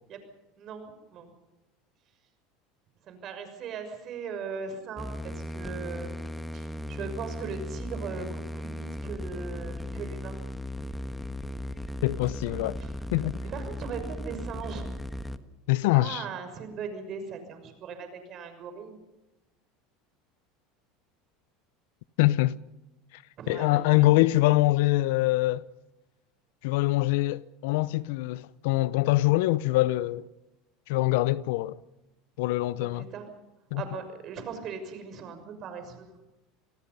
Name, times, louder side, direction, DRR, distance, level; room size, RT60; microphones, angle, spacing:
voice 1, 0.6-1.3 3.1-6.1 6.5-10.3 13.4-14.9 15.9-18.9 23.4-24.1 33.0-33.2 33.8-36.2, right 5 dB, 45° right, 6.3 m, -39 dB
sound 1, 5.0-15.4, left 1 dB, 5° left, 1.4 m, -36 dB
voice 2, 12.0-12.8 13.1-13.3 15.7-16.3 22.2-22.6 23.1-25.6 26.6-30.3 30.9-31.8 32.4-33.1 33.7-33.9, left 18 dB, 75° left, 0.7 m, -24 dB
28.0 x 19.5 x 5.5 m
hypercardioid pair, 95°, 0 cm